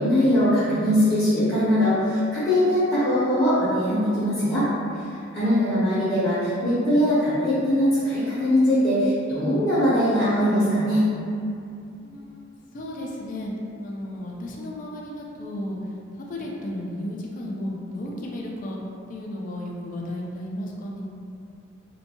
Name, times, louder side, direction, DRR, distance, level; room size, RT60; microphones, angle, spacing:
voice 1, 0.0-4.7 5.3-11.1, equal, 15° left, -15 dB, 0.7 m, -21 dB
voice 2, 5.4-5.8 11.9-13.5 13.8-15.8 16.2-18.8 19.1-21.0, left 1 dB, 45° left, -2 dB, 0.3 m, -34 dB
2.6 x 2.2 x 2.8 m, 2.5 s
head